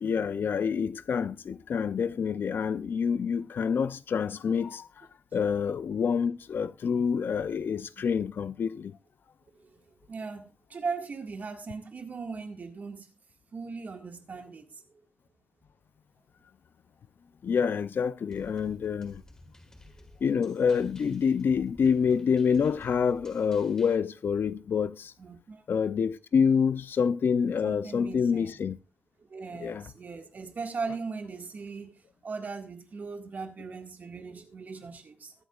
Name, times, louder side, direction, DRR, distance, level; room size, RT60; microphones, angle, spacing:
voice 1, 0.0-9.0 17.4-19.2 20.2-25.1 25.7-28.8 29.6-29.9, left 6 dB, 70° left, 0.5 m, -27 dB
voice 2, 9.5-13.1 13.5-14.8 20.0-20.1 25.2-25.6 27.6-28.6 29.3-35.3, right 4 dB, 50° right, 1.7 m, -39 dB
sound 1, 18.3-23.9, left 1 dB, 15° left, 1.7 m, -54 dB
22.0 x 8.0 x 2.4 m
wide cardioid pair, 155°, 4 cm